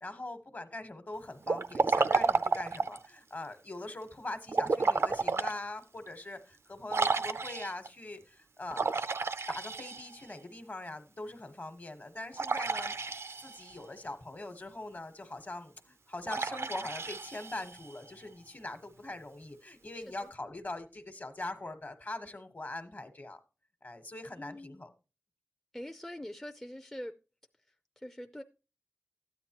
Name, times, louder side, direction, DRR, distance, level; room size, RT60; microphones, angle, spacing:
voice 1, 0.0-9.1 9.5-23.4 23.8-24.9, left 2 dB, 40° left, 1.2 m, -42 dB
Liquid, 1.4-3.1 4.5-5.6 6.1-6.2 6.9-7.9 8.7-10.3 12.4-13.7 16.3-17.9, right 4 dB, 70° right, 0.5 m, -31 dB
voice 2, 24.4-24.8 25.7-27.1 28.0-28.4, left 1 dB, 10° left, 0.5 m, -43 dB
13.0 x 9.3 x 2.9 m
wide cardioid pair, 80°, 5 cm